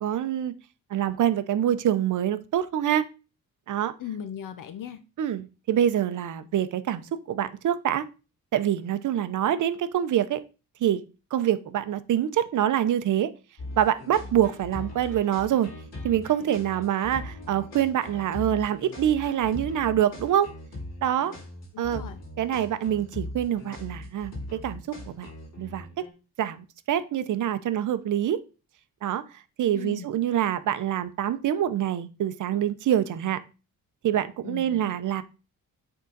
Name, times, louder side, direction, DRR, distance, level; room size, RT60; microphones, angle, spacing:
voice 1, 0.0-0.5 0.9-3.1 3.7-3.9 5.2-7.0 7.3-8.0 8.5-10.4 10.8-11.0 11.3-13.3 13.8-15.7 16.0-20.5 21.0-21.4 21.8-22.0 22.4-25.3 25.6-26.0 26.4-28.4 29.0-29.2 29.6-33.4 34.0-35.2, right 10 dB, 55° right, 0.6 m, -25 dB
voice 2, 4.0-5.0 21.7-22.2 29.7-30.1 34.4-35.0, left 9 dB, 60° left, 0.7 m, -38 dB
sound 1, 13.6-26.1, left 1 dB, 45° left, 3.3 m, -40 dB
8.2 x 3.8 x 3.8 m
wide cardioid pair, 150°, 36 cm